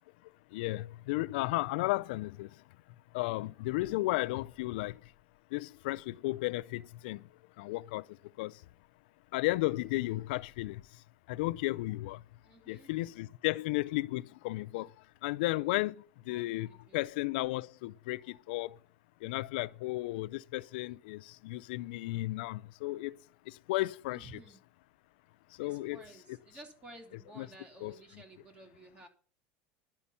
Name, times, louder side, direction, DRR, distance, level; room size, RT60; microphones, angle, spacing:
voice 1, 0.5-2.5 3.1-5.0 5.5-7.2 7.6-8.0 8.4-8.6 9.3-10.8 11.3-12.2 12.7-14.9 15.2-18.8 19.2-23.2 23.5-24.3 25.6-26.0 27.4-27.5 27.8-28.0, left 19 dB, 80° left, 0.4 m, -34 dB
voice 2, 12.4-12.9 16.2-17.1 24.1-24.6 25.6-29.1, right 2 dB, 25° right, 3.4 m, -54 dB
11.5 x 5.7 x 8.3 m
supercardioid pair, 140°, 5 cm